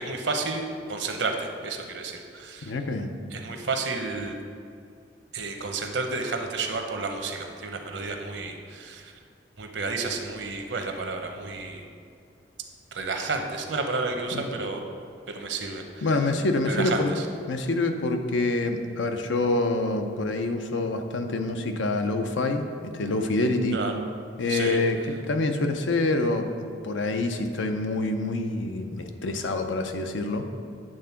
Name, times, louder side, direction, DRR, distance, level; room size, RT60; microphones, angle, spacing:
voice 1, 0.0-2.7 3.3-4.4 5.3-9.1 9.6-11.9 12.9-14.8 15.3-16.1 16.7-17.3 23.7-23.9 24.5-24.8, right 3 dB, 70° right, 4 dB, 0.8 m, -31 dB
voice 2, 2.6-3.1 14.3-14.5 16.0-17.1 17.5-22.6 22.9-23.8 24.4-26.5 26.8-30.4, left 2 dB, 85° left, 6 dB, 0.6 m, -26 dB
8.9 x 3.7 x 5.8 m, 2.3 s
head